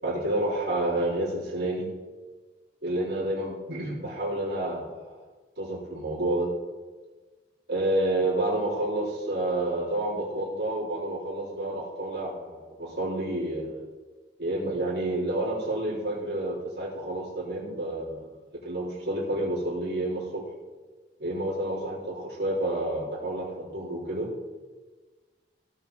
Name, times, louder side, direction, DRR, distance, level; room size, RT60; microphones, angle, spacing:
voice 1, 0.0-1.9 2.8-5.2 5.6-6.5 7.7-13.8 14.4-20.4 21.2-24.3, right 1 dB, 65° right, -6 dB, 3.9 m, -29 dB
17.0 x 7.0 x 4.1 m, 1.3 s
head